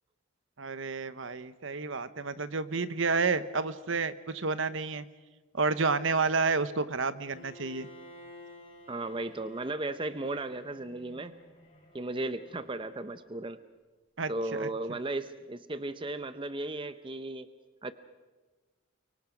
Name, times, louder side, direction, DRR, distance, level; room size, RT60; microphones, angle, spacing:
voice 1, 0.6-5.0 5.5-7.9 14.2-14.7, right 4 dB, 60° right, 13 dB, 1.0 m, -30 dB
Bowed string instrument, 7.3-13.3, left 1 dB, 25° left, 4.0 m, -53 dB
voice 2, 8.9-11.3 11.9-13.6 14.3-17.5 17.8-17.9, right 2 dB, 25° right, 11 dB, 0.6 m, -35 dB
29.5 x 24.0 x 5.1 m, 1.3 s
head